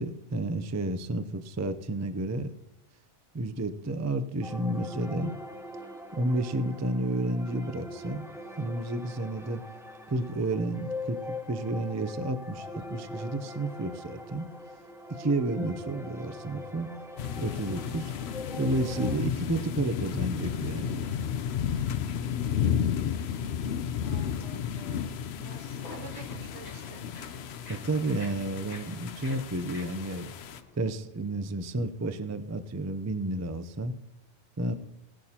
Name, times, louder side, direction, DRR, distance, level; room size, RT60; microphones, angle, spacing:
voice 1, 0.0-2.5 3.3-5.3 6.1-8.3 8.6-9.6 10.1-14.5 15.1-16.9 17.4-18.1 18.6-21.1 27.7-30.3 30.8-33.9 34.6-34.7, right 2 dB, 25° right, 0.3 m, -31 dB
sound 1, 4.4-19.1, left 2 dB, 5° right, 0.8 m, -42 dB
sound 2, 17.2-30.6, left 8 dB, 70° left, 0.8 m, -33 dB
voice 2, 24.0-27.2, right 5 dB, 70° right, 1.1 m, -49 dB
sound 3, 25.7-30.8, left 3 dB, 35° left, 1.5 m, -48 dB
17.0 x 11.0 x 2.9 m
omnidirectional pair, 1.2 m